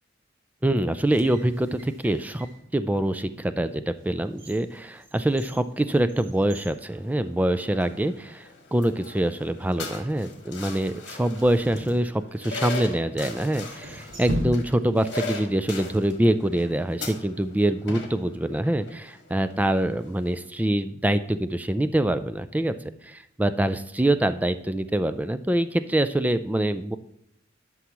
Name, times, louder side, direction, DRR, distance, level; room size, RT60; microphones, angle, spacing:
voice 1, 0.6-2.5 2.7-22.7 23.0-26.9, right 1 dB, 10° right, 12 dB, 0.3 m, -25 dB
sound 1, 0.9-2.7 3.3-3.4 4.0-7.7 8.0-8.1 8.9-9.3 11.3-12.7 13.5-15.1 15.3-15.4, equal, 75° right, 1.6 m, -38 dB
sound 2, 6.9-20.4, left 3 dB, 55° left, 1.6 m, -40 dB
11.5 x 6.1 x 3.0 m, 0.77 s
head